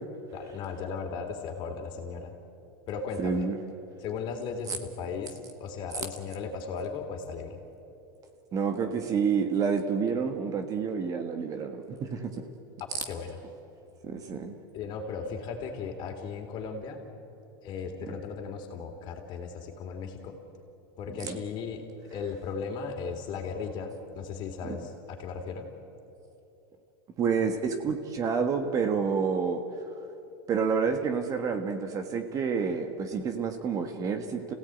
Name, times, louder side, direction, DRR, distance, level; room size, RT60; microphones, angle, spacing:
voice 1, 0.3-2.3 2.9-3.5 4.0-7.6 12.9-13.4 14.7-17.0 17.6-20.4 21.0-25.7, left 5 dB, 40° left, 4 dB, 3.3 m, -36 dB
voice 2, 3.2-3.7 8.5-12.5 14.0-14.5 18.0-18.1 21.2-21.4 27.2-29.6 30.5-34.5, right 6 dB, 30° right, 7 dB, 1.5 m, -29 dB
27.5 x 16.5 x 9.2 m, 2.8 s
supercardioid pair, 155°, 12 cm